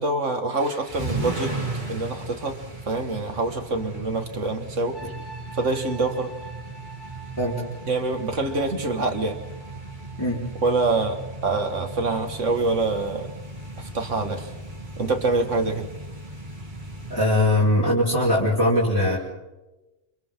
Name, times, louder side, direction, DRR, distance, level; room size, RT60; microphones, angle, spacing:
voice 1, 0.0-1.6 1.9-2.6 2.9-5.0 5.5-6.3 7.9-9.4 10.6-13.3 13.8-14.5 15.0-15.9, right 3 dB, 80° right, 6 dB, 2.3 m, -25 dB
sound 1, 0.5-17.2, right 2 dB, 40° right, 3.8 m, -36 dB
sound 2, 4.9-16.7 17.0-17.4, right 4 dB, 70° left, 3.8 m, -47 dB
voice 2, 17.1-19.2, left 1 dB, 15° left, -7 dB, 5.0 m, -21 dB
28.5 x 27.5 x 3.8 m, 1.1 s
omnidirectional pair, 1.3 m